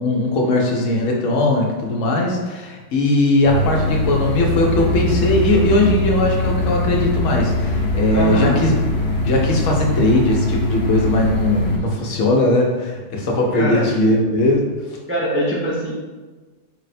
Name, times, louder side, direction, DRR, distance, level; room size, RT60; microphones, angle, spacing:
voice 1, 0.0-8.8 9.2-14.7, left 1 dB, 75° left, 0 dB, 1.1 m, -19 dB
sound 1, 3.4-11.8, left 2 dB, 50° left, 0.8 m, -21 dB
voice 2, 8.1-8.6 13.5-14.0 15.1-16.0, equal, 20° right, -5 dB, 0.3 m, -22 dB
4.1 x 2.1 x 4.1 m, 1.3 s
omnidirectional pair, 1.3 m